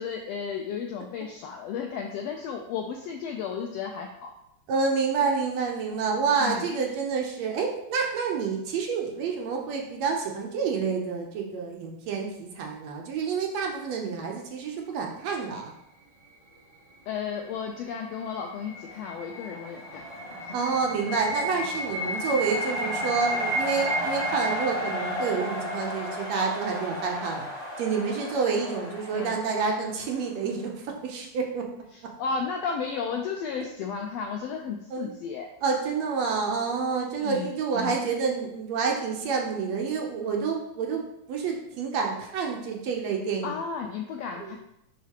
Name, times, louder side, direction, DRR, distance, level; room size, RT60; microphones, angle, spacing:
voice 1, 0.0-4.3 6.4-6.6 17.1-20.1 20.5-20.6 29.1-29.4 31.9-35.5 37.2-37.5 37.7-38.0 43.4-44.6, left 6 dB, 80° left, 3 dB, 1.4 m, -33 dB
voice 2, 4.7-15.7 20.5-27.5 27.8-31.7 34.9-35.1 35.6-41.0 41.3-43.6 44.4-44.6, right 5 dB, 70° right, 1 dB, 1.8 m, -28 dB
sound 1, 17.9-26.9, right 1 dB, 35° right, 0.7 m, -34 dB
sound 2, 18.6-30.6, left 1 dB, 50° left, 3.0 m, -35 dB
10.5 x 3.8 x 2.9 m, 0.82 s
omnidirectional pair, 3.4 m